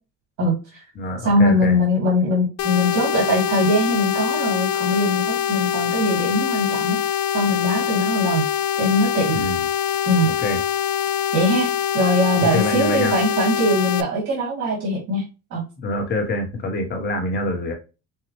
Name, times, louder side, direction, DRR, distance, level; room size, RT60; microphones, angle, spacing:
voice 1, 0.4-0.8 1.2-7.0 7.3-8.4 8.8-9.4 10.1-10.3 11.3-15.2 15.5-15.6, equal, 55° right, -4 dB, 2.2 m, -21 dB
voice 2, 0.9-1.8 9.3-9.6 10.2-10.6 12.4-13.1 15.8-17.7, left 1 dB, 30° left, 2 dB, 1.2 m, -25 dB
sound 1, 2.6-14.0, left 9 dB, 50° left, 0.4 m, -24 dB
5.6 x 2.3 x 3.1 m, 0.29 s
cardioid pair, 165°, 33 cm